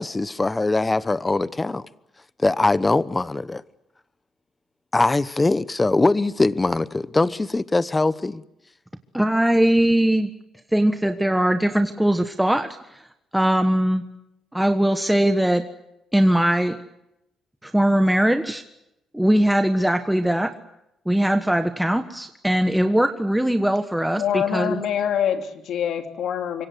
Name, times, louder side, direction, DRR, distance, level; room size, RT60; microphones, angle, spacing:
voice 1, 0.0-1.8 2.4-3.6 4.9-8.4, left 2 dB, 20° left, 1.0 m, -22 dB
voice 2, 9.1-10.3 10.7-12.7 13.3-14.0 14.5-15.7 16.1-16.8 17.6-18.6 19.1-20.5 21.1-24.8, right 1 dB, 5° right, 1.3 m, -20 dB
voice 3, 24.2-26.7, left 9 dB, 75° left, 3.1 m, -25 dB
25.5 x 23.5 x 7.9 m
cardioid pair, 90°, 0 cm